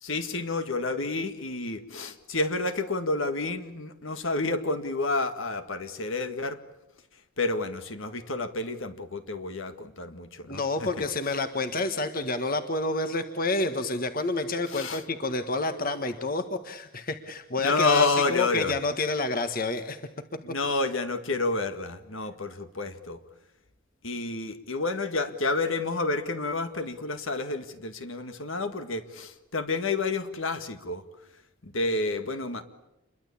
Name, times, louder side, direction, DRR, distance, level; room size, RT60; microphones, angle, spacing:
voice 1, 0.0-6.6 7.4-11.0 14.7-15.0 17.6-18.8 20.4-23.2 24.0-31.0 31.6-32.6, left 3 dB, 65° left, 9 dB, 1.9 m, -29 dB
voice 2, 10.5-20.0, left 2 dB, 40° left, 8 dB, 1.5 m, -29 dB
28.0 x 22.5 x 8.6 m, 0.89 s
head